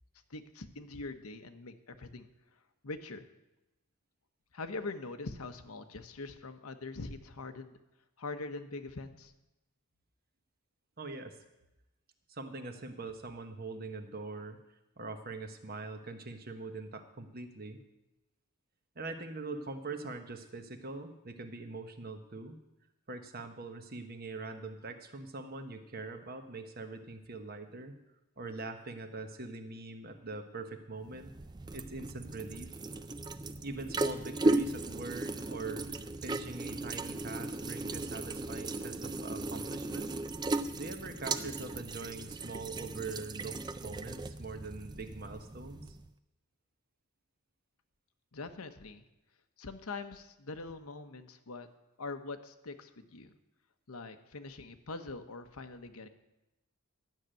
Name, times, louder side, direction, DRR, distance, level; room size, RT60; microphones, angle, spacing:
voice 1, 0.3-2.3 2.8-3.3 4.5-7.8 8.2-9.3 48.3-49.0 49.6-51.7 52.0-53.3 53.9-56.1, left 3 dB, 80° left, 7 dB, 1.0 m, -43 dB
voice 2, 11.0-11.4 12.3-14.6 15.0-17.8 18.9-22.6 23.1-28.0 28.4-31.3 31.7-32.7 33.6-40.1 40.5-46.0, right 3 dB, 45° right, 7 dB, 1.2 m, -43 dB
sound 1, 31.0-46.1, right 2 dB, 20° right, 0.4 m, -36 dB
12.0 x 6.6 x 8.9 m, 0.96 s
head